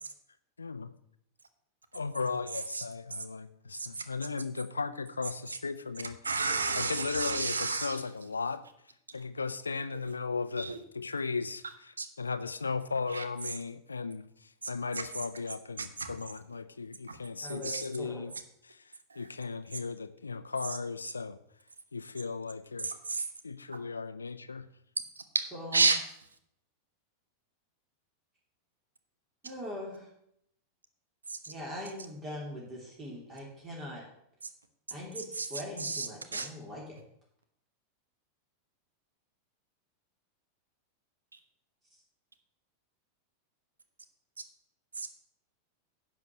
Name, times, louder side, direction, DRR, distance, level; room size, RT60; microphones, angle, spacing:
voice 1, 0.6-0.9 1.9-6.2 6.7-8.6 9.1-18.3 18.7-21.4 21.9-22.9 23.4-24.7, left 4 dB, 75° left, 12 dB, 0.6 m, -36 dB
voice 2, 6.2-8.0 10.6-10.8 12.0-12.1 13.1-13.2 16.0-16.1 17.1-17.2 17.6-17.8 19.1-19.2 22.8-23.2 25.2-25.4 25.7-26.0 31.3-31.5 35.4-35.5 35.8-36.1 36.3-36.5, right 4 dB, 75° right, 9 dB, 1.1 m, -30 dB
voice 3, 17.4-18.2 25.5-25.9 29.4-30.1 31.5-34.0 34.9-37.0, left 1 dB, 25° right, -3 dB, 3.3 m, -41 dB
10.5 x 5.1 x 7.4 m, 0.73 s
figure-of-eight pair, 90°, 0 cm